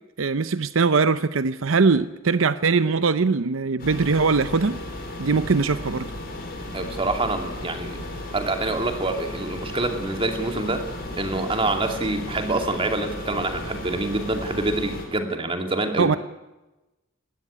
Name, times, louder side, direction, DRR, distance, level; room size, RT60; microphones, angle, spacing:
voice 1, 0.2-4.8 5.2-6.1 16.0-16.2, right 4 dB, 80° right, 13 dB, 0.7 m, -21 dB
sound 1, 3.8-15.1, left 1 dB, 50° left, 5.2 m, -35 dB
voice 2, 6.7-8.0 8.3-16.2, right 2 dB, 25° right, 5 dB, 2.5 m, -26 dB
19.0 x 16.0 x 10.0 m, 1.0 s
head